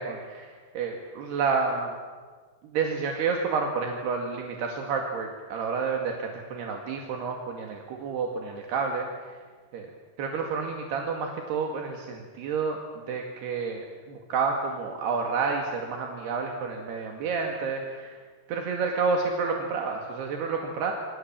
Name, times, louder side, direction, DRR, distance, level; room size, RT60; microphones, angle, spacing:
voice 1, 0.0-1.9 2.6-9.4 9.7-9.9 10.2-12.8 13.1-18.2 18.5-20.9, right 5 dB, 75° right, 2 dB, 4.2 m, -30 dB
27.5 x 26.0 x 7.5 m, 1.5 s
omnidirectional pair, 4.7 m